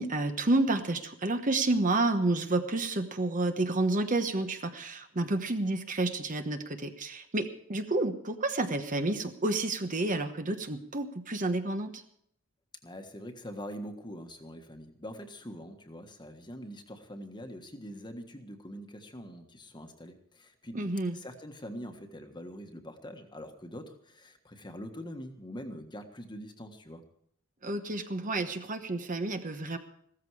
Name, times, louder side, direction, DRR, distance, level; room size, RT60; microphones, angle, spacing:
voice 1, 0.0-12.0 20.7-21.2 27.6-29.8, right 2 dB, 35° right, 7 dB, 1.1 m, -30 dB
voice 2, 12.8-20.8 21.1-27.0, equal, 20° left, 6 dB, 1.5 m, -44 dB
15.5 x 14.0 x 4.8 m, 0.69 s
head